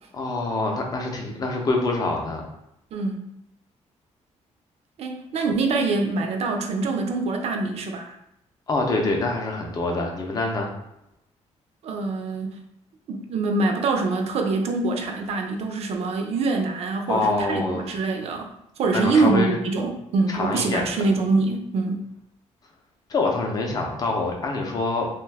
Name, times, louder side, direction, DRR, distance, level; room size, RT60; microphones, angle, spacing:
voice 1, 0.1-2.5 8.7-10.7 17.1-17.8 18.9-19.6 20.3-20.9 23.1-25.1, left 3 dB, 30° left, 1 dB, 0.5 m, -25 dB
voice 2, 2.9-3.3 5.0-8.2 11.8-12.6 13.1-22.1, right 3 dB, 60° right, 4 dB, 0.4 m, -24 dB
2.6 x 2.3 x 3.3 m, 0.79 s
cardioid pair, 170°, 12 cm